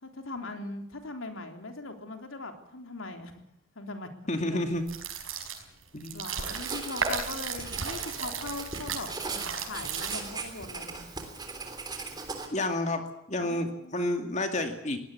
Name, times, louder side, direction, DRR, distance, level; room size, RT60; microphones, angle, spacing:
voice 1, 0.0-3.4 3.7-4.6 6.1-11.1 13.4-13.9, left 2 dB, 80° left, 5 dB, 3.5 m, -40 dB
voice 2, 4.3-4.8 5.9-6.2 12.5-13.0 13.3-15.0, left 1 dB, 35° left, 6 dB, 2.3 m, -30 dB
sound 1, 4.8-10.5, right 5 dB, 85° right, 5.0 m, -35 dB
Writing, 6.5-12.5, right 4 dB, 20° right, 3.3 m, -39 dB
21.5 x 18.0 x 8.5 m, 0.77 s
head